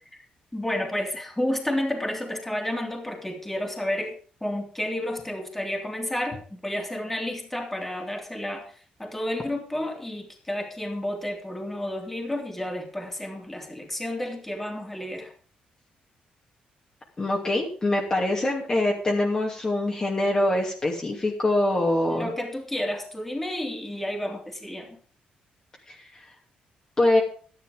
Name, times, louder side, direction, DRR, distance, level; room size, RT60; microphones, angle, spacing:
voice 1, 0.5-15.3 22.1-25.0, left 1 dB, 5° left, 1 dB, 3.3 m, -31 dB
voice 2, 17.2-22.3 25.9-26.0 27.0-27.2, left 1 dB, 25° left, -2 dB, 2.7 m, -24 dB
12.0 x 11.0 x 5.1 m, 0.42 s
cardioid pair, 120°, 3 cm